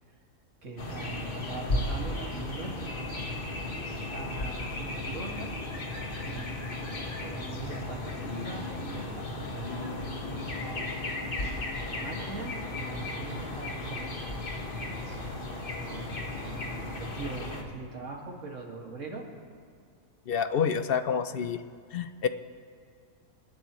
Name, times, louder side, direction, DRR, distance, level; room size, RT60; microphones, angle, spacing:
voice 1, 0.6-2.9 3.9-5.5 6.3-6.9 7.2-10.9 11.8-14.2 15.1-16.1 16.4-19.2, right 3 dB, 60° right, 0 dB, 2.3 m, -42 dB
sound 1, 0.8-17.6, left 2 dB, 40° left, 1.5 m, -35 dB
voice 2, 20.3-21.6 21.9-22.3, left 7 dB, 65° left, 10 dB, 0.6 m, -28 dB
27.5 x 12.0 x 3.1 m, 2.2 s
omnidirectional pair, 1.5 m